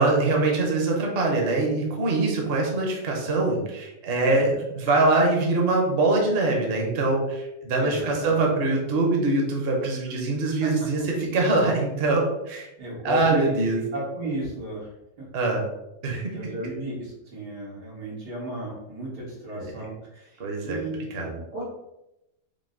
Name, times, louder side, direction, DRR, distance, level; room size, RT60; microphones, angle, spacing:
voice 1, 0.0-12.7 13.0-13.8 15.3-15.6 16.0-16.2 19.5-19.9 20.4-20.8 21.1-21.4, right 2 dB, 45° right, 0 dB, 0.9 m, -23 dB
voice 2, 7.8-8.4 10.6-10.7 12.8-13.6 13.9-14.9 15.2-15.3 16.3-21.1 21.5-21.6, equal, 85° right, -5 dB, 2.1 m, -33 dB
5.2 x 2.1 x 3.8 m, 0.89 s
omnidirectional pair, 1.7 m